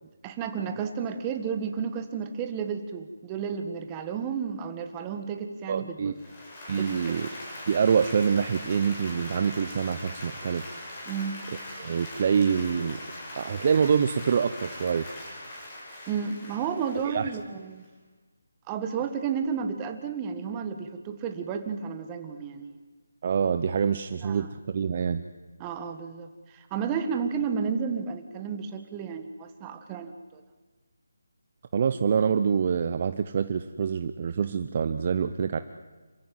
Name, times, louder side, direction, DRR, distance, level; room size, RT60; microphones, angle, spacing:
voice 1, 0.2-6.1 6.8-7.3 11.1-11.4 16.1-17.8 18.7-22.8 24.2-24.5 25.6-30.4, right 6 dB, 15° right, 7 dB, 1.6 m, -32 dB
voice 2, 5.7-6.1 6.7-7.3 7.7-10.7 11.8-13.0 13.4-15.1 17.0-17.3 23.2-25.2 31.7-35.6, right 6 dB, 35° right, 10 dB, 0.9 m, -26 dB
Applause, 6.1-17.8, left 1 dB, 25° left, 7.9 m, -41 dB
27.5 x 15.0 x 9.4 m, 1.3 s
figure-of-eight pair, 165°, 0 cm